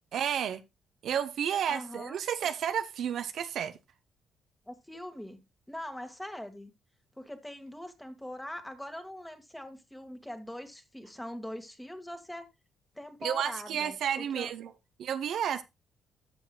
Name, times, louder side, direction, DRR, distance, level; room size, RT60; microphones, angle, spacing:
voice 1, 0.1-0.6 1.0-3.8 13.2-14.7 15.0-15.6, right 9 dB, 70° right, 0.8 m, -31 dB
voice 2, 1.7-2.2 4.7-5.4 5.7-6.7 7.2-12.5 13.0-14.5, left 1 dB, 5° left, 1.9 m, -42 dB
13.0 x 7.1 x 2.3 m
cardioid pair, 90°, 0 cm